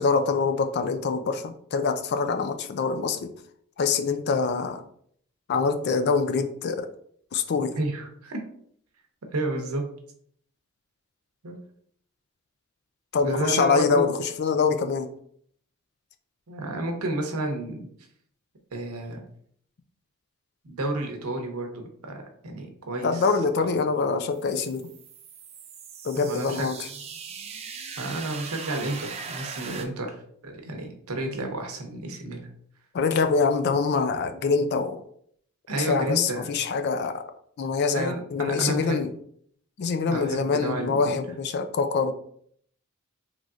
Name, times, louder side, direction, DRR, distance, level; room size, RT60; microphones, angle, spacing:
voice 1, 0.0-3.3 3.8-4.8 5.5-6.9 7.3-7.8 13.1-15.1 23.0-24.9 26.0-26.9 32.9-35.0 35.8-37.2 37.6-39.1 39.8-42.1, left 5 dB, 50° left, 8 dB, 0.3 m, -25 dB
voice 2, 7.8-8.4 9.3-9.8 11.4-11.6 13.2-14.1 16.5-17.9 18.7-19.2 20.6-23.3 23.6-23.7 26.1-26.7 28.0-30.2 30.4-32.5 35.7-36.5 37.9-39.0 40.1-41.0, right 2 dB, 90° right, 3 dB, 0.8 m, -31 dB
sound 1, 24.4-29.9, right 5 dB, 30° right, 0.4 m, -40 dB
3.8 x 3.1 x 2.4 m, 0.64 s
head